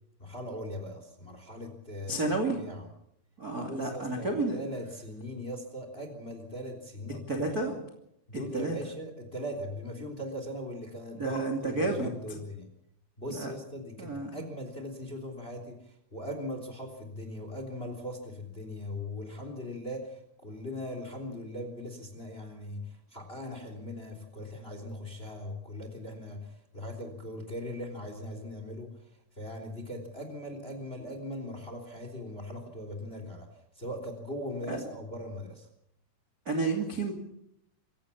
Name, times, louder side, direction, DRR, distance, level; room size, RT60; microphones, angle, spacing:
voice 1, 0.2-2.2 2.5-2.9 3.5-7.7 8.3-12.7 13.2-29.1 29.4-33.5 33.7-35.7, left 1 dB, 15° left, 6 dB, 2.6 m, -40 dB
voice 2, 2.1-2.6 3.4-4.6 7.3-7.7 8.5-8.7 11.1-12.4 13.3-13.5 14.0-14.4 34.7-34.8 36.5-37.1, right 2 dB, 30° right, 2 dB, 1.9 m, -31 dB
26.5 x 16.0 x 7.1 m, 0.79 s
omnidirectional pair, 5.9 m